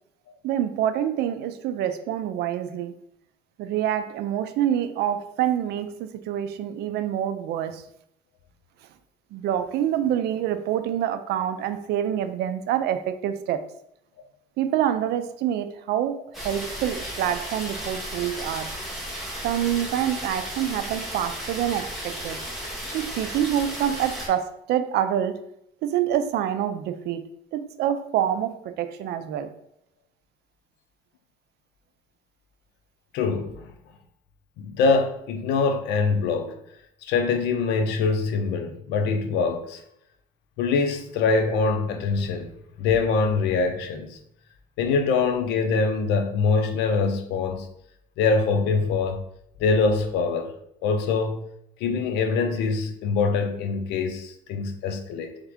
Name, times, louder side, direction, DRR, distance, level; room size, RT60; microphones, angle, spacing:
voice 1, 0.4-3.0 3.6-7.9 9.3-13.7 14.6-18.7 19.4-22.4 22.9-25.5 25.8-29.5, right 10 dB, 75° right, 0.5 m, -26 dB
sound 1, 16.3-24.3, equal, ahead, 1.5 m, -34 dB
voice 2, 33.1-33.7 34.6-36.6 37.0-39.8 40.6-42.5 42.8-44.2 44.8-47.7 48.2-49.2 49.6-50.5 50.8-51.4 51.8-55.4, left 4 dB, 90° left, 0.6 m, -24 dB
3.6 x 3.5 x 3.5 m
cardioid pair, 110°, 17 cm